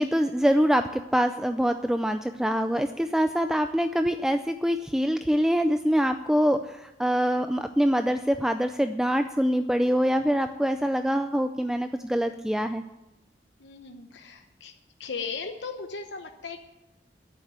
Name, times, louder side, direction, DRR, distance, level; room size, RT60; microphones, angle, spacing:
voice 1, 0.0-12.8, equal, 5° right, 8 dB, 0.3 m, -24 dB
voice 2, 13.6-14.7 15.0-16.6, left 5 dB, 85° left, 5 dB, 0.9 m, -37 dB
10.5 x 8.8 x 8.8 m, 1.0 s
head